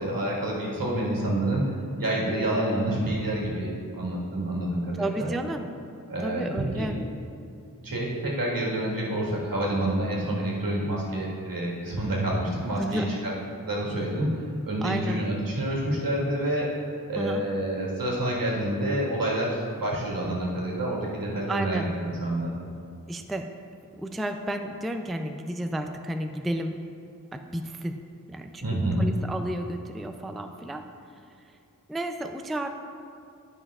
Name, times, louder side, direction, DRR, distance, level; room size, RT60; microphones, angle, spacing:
voice 1, 0.0-5.3 6.1-6.9 7.8-13.3 13.7-14.3 14.6-16.8 17.1-22.5 28.6-29.1, right 1 dB, 80° right, -5 dB, 1.7 m, -28 dB
voice 2, 5.0-5.6 6.2-7.0 12.8-13.2 14.8-15.2 17.2-17.5 21.5-21.9 23.1-23.5 24.0-26.7 27.3-28.0 28.3-28.6 29.0-30.8 31.9-32.7, right 1 dB, ahead, 6 dB, 0.3 m, -32 dB
12.0 x 5.4 x 2.4 m, 2.4 s
wide cardioid pair, 60°, 34 cm